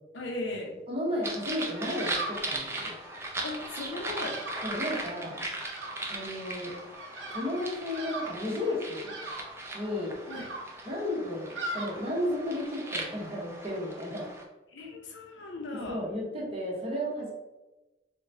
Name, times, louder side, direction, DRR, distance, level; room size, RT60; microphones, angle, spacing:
voice 1, 0.1-0.8 3.4-4.4 10.3-10.5 14.7-16.0, left 2 dB, 85° left, 2 dB, 0.6 m, -37 dB
voice 2, 0.9-2.9 4.6-5.4 6.1-6.7 7.3-9.1 9.7-10.2 10.8-14.2 14.8-14.9 15.9-17.3, left 1 dB, 30° right, -4 dB, 1.0 m, -33 dB
sound 1, 1.2-14.4, right 2 dB, 15° right, 0.4 m, -38 dB
Bird vocalization bird call bird song, 1.7-12.6, right 2 dB, 80° right, 0.6 m, -42 dB
4.7 x 2.2 x 2.6 m, 1.1 s
head